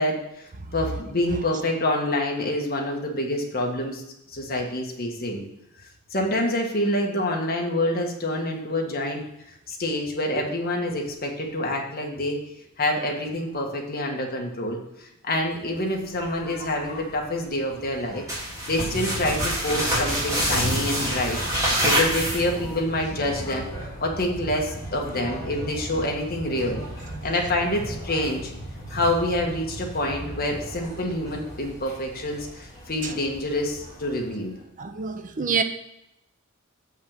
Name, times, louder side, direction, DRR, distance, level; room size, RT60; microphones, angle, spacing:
voice 1, 0.0-4.0 4.3-5.4 6.1-9.2 9.7-12.4 12.8-14.8 15.2-18.2 18.7-21.4 21.8-23.7 24.0-26.8 27.2-28.5 28.9-34.5, left 1 dB, 45° left, 0 dB, 1.6 m, -27 dB
sound 1, 15.4-34.6, equal, 15° left, 2.9 m, -38 dB
sound 2, 18.3-22.8, equal, 15° right, 3.6 m, -25 dB
voice 2, 34.8-35.6, right 5 dB, 40° right, 8 dB, 0.6 m, -27 dB
7.4 x 5.6 x 6.6 m, 0.83 s
head